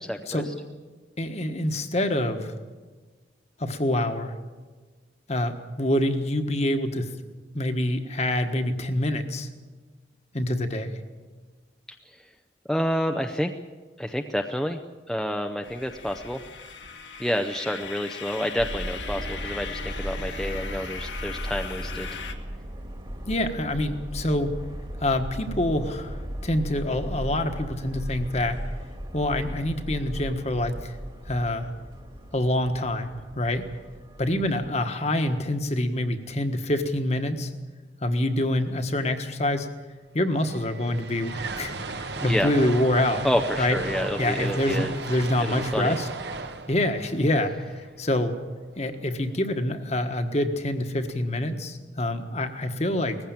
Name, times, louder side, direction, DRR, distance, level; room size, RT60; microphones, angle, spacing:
voice 1, 0.1-0.4 12.7-13.5 14.0-14.8 15.1-16.4 17.2-22.1 42.2-42.5 43.2-44.9 45.4-46.0, equal, ahead, 4 dB, 0.6 m, -28 dB
voice 2, 1.2-2.5 3.6-4.3 5.3-7.1 7.5-9.5 10.3-10.9 23.2-24.5 25.0-28.6 29.1-31.0 31.3-31.7 32.3-33.7 34.2-37.5 38.0-39.7 40.1-43.3 43.6-43.9 44.2-46.1 46.7-48.4 48.8-53.2, left 1 dB, 35° left, 7 dB, 1.4 m, -26 dB
sound 1, 15.6-22.3, left 5 dB, 70° left, 1.7 m, -39 dB
Subway metro underground, 18.6-34.7, equal, 25° right, 1.9 m, -36 dB
sound 2, 39.9-40.0 40.1-48.4, right 3 dB, 60° right, 1.3 m, -36 dB
19.0 x 15.5 x 8.9 m, 1.4 s
head